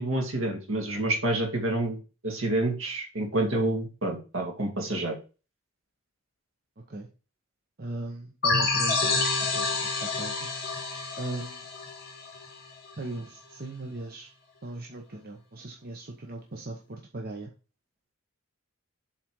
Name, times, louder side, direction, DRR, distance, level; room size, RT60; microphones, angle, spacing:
voice 1, 0.0-5.1, right 1 dB, 65° right, 3 dB, 2.0 m, -28 dB
voice 2, 7.8-10.5 11.2-11.7 13.0-14.3 14.6-17.5, right 2 dB, 45° right, 2 dB, 1.0 m, -38 dB
sound 1, 8.4-12.9, left 3 dB, 50° left, 2.1 m, -28 dB
7.4 x 4.2 x 4.6 m, 0.33 s
head